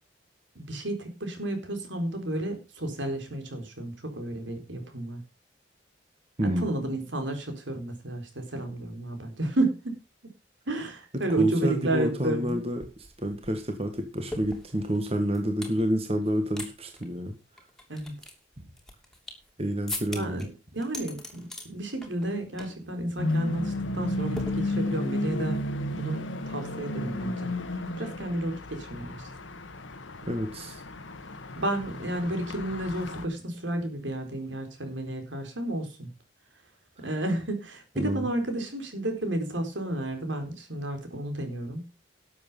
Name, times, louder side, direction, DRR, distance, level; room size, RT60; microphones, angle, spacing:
voice 1, 0.5-5.2 6.4-9.9 10.7-12.6 17.9-18.1 20.2-20.5 20.7-25.7 25.9-27.5 28.0-29.2 31.6-36.1 37.0-41.9, right 1 dB, 75° right, 6 dB, 4.1 m, -32 dB
voice 2, 11.4-17.3 18.6-18.7 19.6-20.4 30.3-30.8 37.9-38.3, equal, 30° right, 5 dB, 1.7 m, -29 dB
sound 1, 12.5-12.6 12.8-15.8 16.2-16.7 16.9-17.1 17.6-19.5 19.9-20.5 20.8-21.7 22.0-22.3 22.6-22.8 23.2-23.4 24.4-25.1, left 1 dB, 5° left, 2.8 m, -40 dB
sound 2, 23.2-33.3, left 1 dB, 90° left, 1.4 m, -33 dB
12.5 x 7.6 x 5.5 m, 0.29 s
head